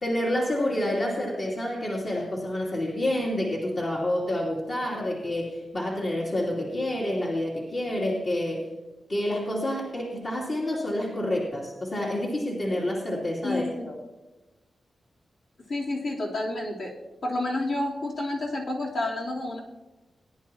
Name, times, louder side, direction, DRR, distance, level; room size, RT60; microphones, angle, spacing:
voice 1, 0.0-8.7 9.1-13.9, left 1 dB, 55° left, -6 dB, 2.8 m, -28 dB
voice 2, 13.4-13.9 15.7-16.9 17.2-19.6, left 2 dB, 70° left, -5 dB, 3.4 m, -29 dB
20.5 x 10.5 x 2.9 m, 1.1 s
wide cardioid pair, 90°, 0 cm